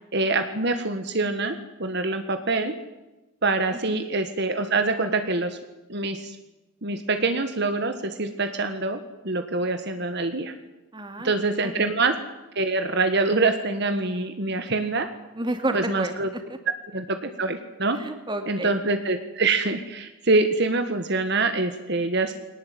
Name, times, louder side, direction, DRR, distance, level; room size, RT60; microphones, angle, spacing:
voice 1, 0.1-2.7 3.4-5.6 5.9-6.4 6.8-9.0 9.2-10.5 11.2-12.1 12.5-15.1 15.7-16.3 16.9-18.0 18.5-22.3, right 3 dB, 50° right, 7 dB, 1.7 m, -25 dB
voice 2, 10.9-11.8 15.4-16.6 17.9-18.7, right 1 dB, 20° right, 7 dB, 2.5 m, -31 dB
22.0 x 18.5 x 9.4 m, 1.1 s
head